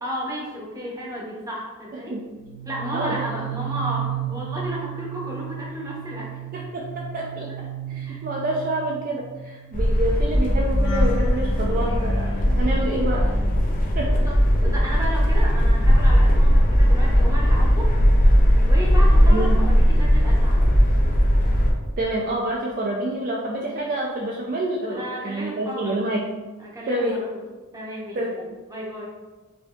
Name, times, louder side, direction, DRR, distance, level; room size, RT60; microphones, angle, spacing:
voice 1, 0.0-2.2 2.6-6.3 7.5-7.6 8.0-8.2 14.1-17.9 18.6-20.7 24.9-26.0 26.6-27.4 27.7-28.4 28.7-29.1, equal, 15° right, -4 dB, 0.7 m, -33 dB
sound 1, 2.3-14.6 14.9-17.0 17.3-17.6, right 5 dB, 60° left, 0.8 m, -35 dB
voice 2, 6.5-7.7 7.9-13.3 13.9-14.2 14.6-14.7 19.2-19.6 22.0-26.2 26.9-27.2 28.1-28.3, right 1 dB, 40° right, -2 dB, 0.3 m, -27 dB
sound 2, 9.7-21.7, equal, 40° left, 0.5 m, -18 dB
5.0 x 2.6 x 2.3 m, 1.3 s
head